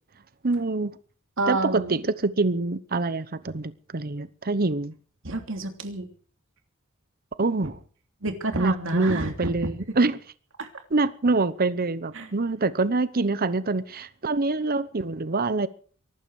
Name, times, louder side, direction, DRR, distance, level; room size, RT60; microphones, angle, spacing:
voice 1, 0.4-1.0 1.5-4.9 7.4-7.8 8.6-10.2 10.9-15.7, right 3 dB, 45° right, 0.9 m, -25 dB
voice 2, 1.4-2.0 5.2-6.1 7.6-7.7 8.2-9.7 10.6-10.7 12.1-12.3, right 2 dB, 65° right, 3.1 m, -29 dB
23.0 x 12.5 x 4.9 m
head